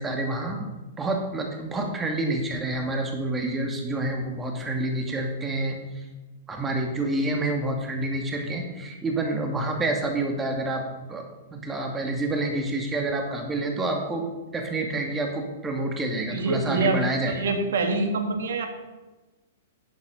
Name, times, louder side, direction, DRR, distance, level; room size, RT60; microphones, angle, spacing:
voice 1, 0.0-6.0 6.5-10.8 11.1-11.2 11.5-17.3, right 2 dB, 15° right, 2 dB, 2.3 m, -28 dB
voice 2, 16.3-18.7, right 3 dB, 70° right, 6 dB, 1.9 m, -25 dB
11.5 x 8.2 x 5.5 m, 1.2 s
hypercardioid pair, 115°, 0 cm